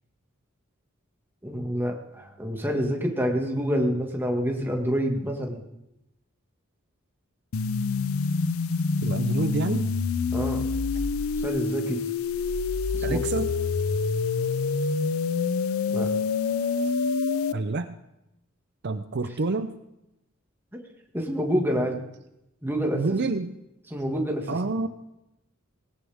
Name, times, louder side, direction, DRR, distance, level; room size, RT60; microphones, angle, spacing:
voice 1, 1.4-5.6 10.3-10.6 11.4-12.0 12.9-13.4 15.9-16.1 20.7-20.8 21.1-22.0 22.6-23.0 23.9-24.5, equal, 10° right, 1 dB, 1.9 m, -27 dB
sound 1, 7.5-17.5, left 4 dB, 90° left, 0.5 m, -26 dB
voice 2, 9.0-9.9 13.0-13.5 17.5-17.9 18.8-19.7 22.9-23.5 24.5-24.9, right 3 dB, 55° right, 9 dB, 0.6 m, -27 dB
18.0 x 17.0 x 3.6 m, 0.89 s
head